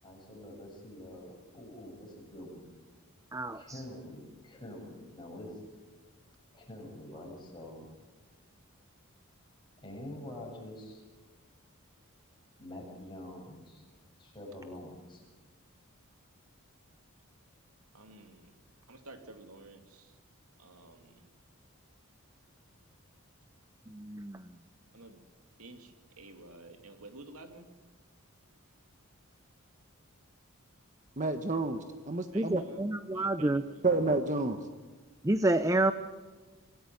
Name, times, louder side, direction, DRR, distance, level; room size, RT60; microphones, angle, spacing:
voice 1, 0.0-2.7 3.5-5.6 6.5-7.9 9.8-11.0 12.6-13.8 14.2-15.2, left 1 dB, 20° left, -1 dB, 7.9 m, -46 dB
voice 2, 3.3-3.8 23.9-24.5 32.3-33.6 35.2-35.9, right 2 dB, 15° right, 11 dB, 0.7 m, -29 dB
voice 3, 17.9-18.5 18.9-20.1 20.6-21.3 24.9-25.2 25.6-27.7 32.3-32.9 33.1-33.9, right 2 dB, 85° right, 6 dB, 2.8 m, -51 dB
voice 4, 31.2-32.6 33.8-34.6, right 3 dB, 35° right, 7 dB, 1.2 m, -30 dB
25.5 x 18.0 x 9.5 m, 1.3 s
head